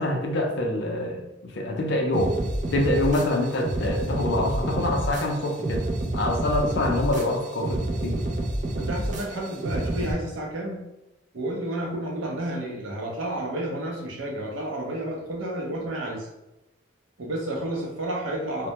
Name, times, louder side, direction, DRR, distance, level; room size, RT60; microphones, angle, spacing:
voice 1, 0.0-2.4 2.7-5.8 6.1-8.2, left 1 dB, 60° left, 2 dB, 0.5 m, -25 dB
sound 1, 2.1-10.1, right 1 dB, 40° right, 0.3 m, -29 dB
voice 2, 8.7-10.8 11.3-16.3 17.2-18.7, right 1 dB, 85° right, -1 dB, 0.6 m, -31 dB
2.1 x 2.1 x 2.8 m, 0.96 s
head